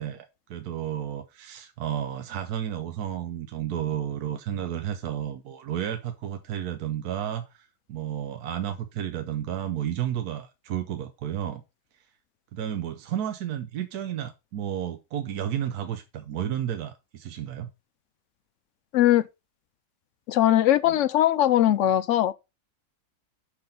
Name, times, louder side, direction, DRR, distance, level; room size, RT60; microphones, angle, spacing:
voice 1, 0.0-11.6 12.5-17.7 20.9-21.0, right 10 dB, 80° right, 1.2 m, -32 dB
voice 2, 18.9-19.3 20.3-22.3, left 12 dB, 65° left, 0.8 m, -20 dB
6.1 x 5.9 x 5.2 m
omnidirectional pair, 1.6 m